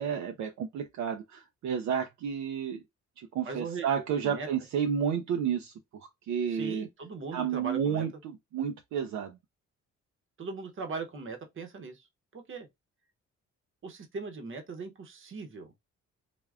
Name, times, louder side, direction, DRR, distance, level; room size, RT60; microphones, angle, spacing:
voice 1, 0.0-2.8 3.2-6.9 7.3-8.1 8.5-9.4, right 8 dB, 65° right, 0.5 m, -31 dB
voice 2, 3.4-3.9 4.2-4.5 6.5-8.0 10.4-12.1 12.3-12.7 13.8-15.7, right 4 dB, 45° right, 0.8 m, -39 dB
3.4 x 2.2 x 2.4 m
cardioid pair, 90°, 30 cm